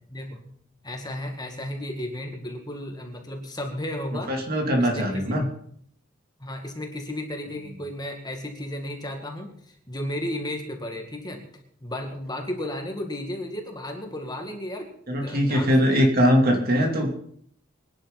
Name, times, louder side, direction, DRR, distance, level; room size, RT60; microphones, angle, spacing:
voice 1, 0.1-0.4 0.8-4.3 4.8-5.4 6.4-11.5 11.8-16.1, left 1 dB, 20° left, 3 dB, 2.2 m, -34 dB
voice 2, 4.3-5.4 15.1-17.1, equal, 50° right, 2 dB, 3.1 m, -21 dB
24.5 x 10.5 x 4.1 m, 0.64 s
head